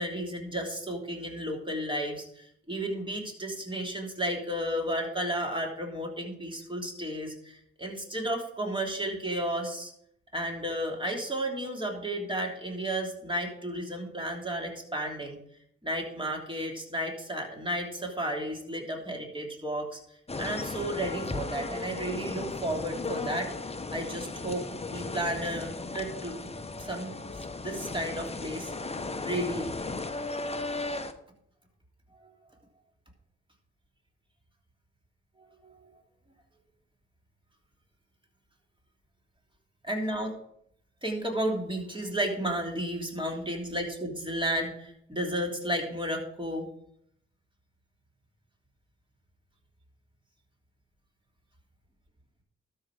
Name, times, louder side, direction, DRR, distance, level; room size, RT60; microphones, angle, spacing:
voice 1, 0.0-9.9 10.3-15.4 15.8-20.0 20.4-23.5 23.9-26.5 26.8-27.2 27.6-29.7 32.2-32.3 35.6-35.9 39.8-40.3 41.0-46.7, right 1 dB, 15° right, 0 dB, 3.1 m, -33 dB
sound 1, 20.3-31.1, left 3 dB, 20° left, 1.0 m, -36 dB
12.5 x 5.6 x 4.9 m, 0.71 s
hypercardioid pair, 40°, 30 cm